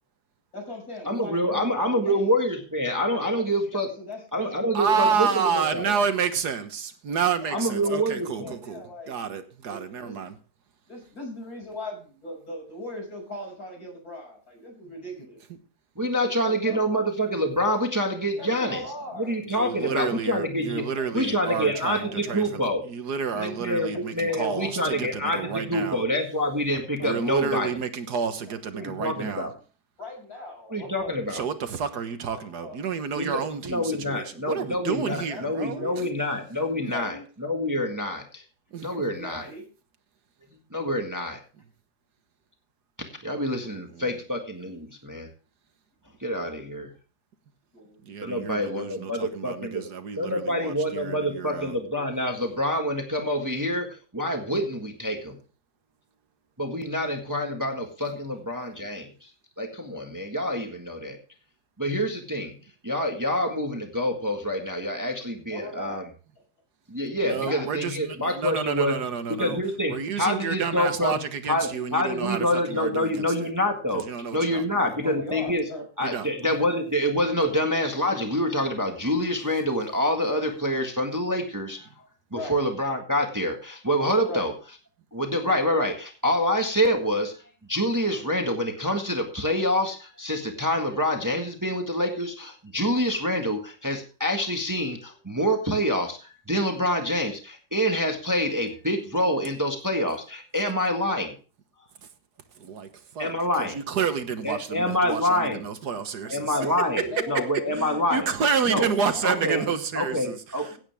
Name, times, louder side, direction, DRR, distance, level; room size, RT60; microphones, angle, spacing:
voice 1, 0.5-2.3 3.1-3.2 4.0-5.4 7.4-9.1 9.7-10.2 10.9-15.4 16.4-17.0 18.4-20.2 20.7-21.1 21.7-22.4 23.9-24.0 24.3-25.1 26.7-27.3 28.8-28.9 30.0-31.1 32.3-32.7 35.1-35.4 35.7-35.9 36.6-37.2 38.9-39.6 43.7-43.8 47.7-48.0 65.5-66.0 67.4-67.7 75.0-75.8 76.5-76.7 82.3-82.6 84.3-84.5 106.2-109.7, left 1 dB, 65° left, 7.0 m, -40 dB
voice 2, 1.0-3.9 4.3-5.9 7.5-8.5 16.0-18.8 19.2-20.9 21.1-22.8 23.3-27.7 28.7-29.5 30.7-31.4 33.1-38.4 38.8-39.5 40.7-41.4 43.2-45.3 46.2-46.9 48.2-49.8 50.2-55.4 56.6-59.3 59.6-61.2 61.8-62.6 62.8-66.1 66.9-69.0 69.4-71.2 71.5-74.1 74.3-75.6 76.0-81.9 82.3-84.5 85.1-87.3 87.7-101.3 103.2-103.8 104.4-105.6 106.3-108.2 108.7-108.9 109.2-109.6 109.9-110.7, equal, 10° right, 1.6 m, -26 dB
voice 3, 4.7-10.4 19.4-26.0 27.0-29.5 31.3-36.1 36.8-36.9 38.7-38.9 43.5-44.2 48.0-51.8 67.2-69.6 69.9-73.5 73.9-75.1 76.0-76.6 102.6-106.6 107.8-110.7, right 6 dB, 80° right, 1.8 m, -30 dB
16.5 x 8.9 x 3.5 m
omnidirectional pair, 1.7 m